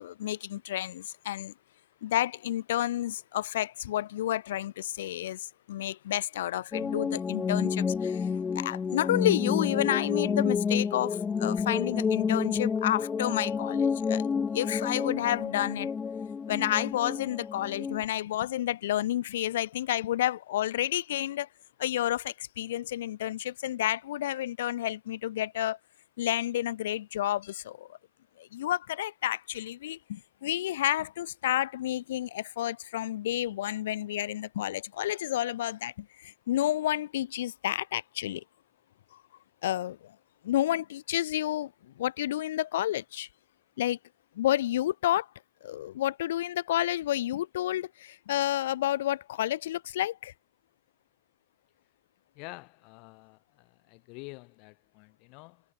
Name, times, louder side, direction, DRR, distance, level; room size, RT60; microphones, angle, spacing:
voice 1, 0.0-1.5 2.0-8.3 8.6-15.9 16.5-21.5 21.8-25.8 26.2-28.0 28.4-38.4 39.6-40.1 40.4-41.7 42.0-43.3 43.8-44.0 44.4-45.3 45.6-50.3, left 13 dB, 85° left, 3.5 m, -30 dB
sound 1, 6.7-18.0, left 6 dB, 15° left, 2.6 m, -30 dB
voice 2, 52.4-55.6, left 31 dB, 40° left, 5.3 m, -48 dB
supercardioid pair, 165°, 0 cm